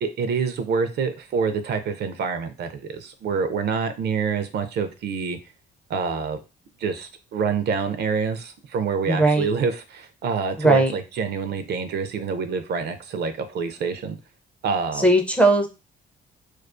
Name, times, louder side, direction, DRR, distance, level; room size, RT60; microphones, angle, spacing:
voice 1, 0.0-5.4 5.9-6.4 6.8-14.2 14.6-15.1, right 5 dB, 60° right, 9 dB, 0.4 m, -26 dB
voice 2, 9.1-9.5 10.6-10.9 15.0-15.7, right 2 dB, 5° left, 3 dB, 0.4 m, -18 dB
2.3 x 2.3 x 2.4 m, 0.29 s
cardioid pair, 90°, 20 cm